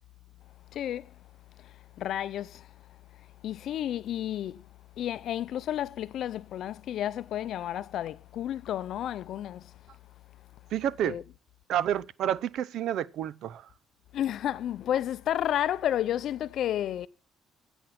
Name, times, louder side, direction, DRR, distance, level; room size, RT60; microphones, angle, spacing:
voice 1, 0.7-1.1 1.6-2.7 3.4-4.7 5.0-9.7 11.0-11.2 14.1-17.1, left 11 dB, 60° left, 0.6 m, -31 dB
voice 2, 10.7-11.2 11.7-13.7, right 10 dB, 70° right, 0.7 m, -29 dB
15.5 x 8.1 x 6.0 m
cardioid pair, 135°, 0 cm